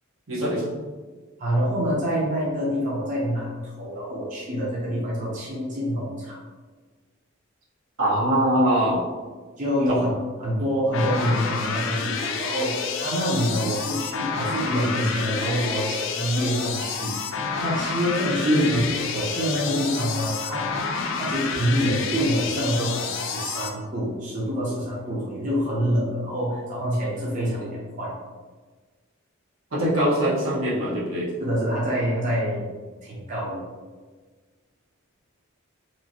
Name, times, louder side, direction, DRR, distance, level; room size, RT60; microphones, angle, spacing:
voice 1, 0.3-0.7 8.0-9.0 9.9-10.0 18.4-18.8 29.7-31.3, equal, 75° right, -7 dB, 0.9 m, -22 dB
voice 2, 1.4-6.4 9.6-10.1 10.4-17.2 17.6-18.8 19.1-20.6 21.2-28.1 31.4-32.6 33.0-33.6, equal, 40° right, -6 dB, 0.6 m, -26 dB
sound 1, 10.9-23.7, left 5 dB, 65° left, 0.3 m, -29 dB
3.0 x 2.5 x 2.7 m, 1.4 s
head